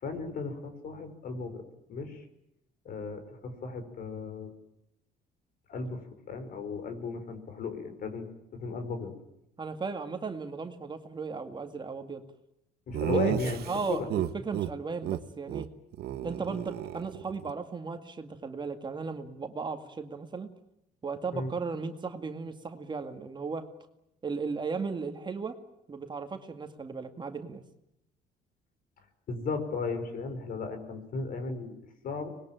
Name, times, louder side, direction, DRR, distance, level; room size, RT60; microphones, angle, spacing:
voice 1, 0.0-1.6 1.9-2.3 2.9-4.5 5.7-9.2 12.9-13.6 13.9-14.1 21.3-21.5 29.3-31.7 32.0-32.3, left 4 dB, 55° left, 8 dB, 5.3 m, -35 dB
voice 2, 9.6-12.2 13.1-15.7 16.2-20.5 21.0-23.7 24.2-25.6 25.9-27.6, right 4 dB, 25° right, 6 dB, 2.1 m, -36 dB
Laughter, 12.9-14.7 15.0-15.2 15.5-15.7 15.9-17.5, right 13 dB, 70° right, 1.3 m, -32 dB
25.0 x 21.0 x 9.1 m, 0.82 s
cardioid pair, 110°, 17 cm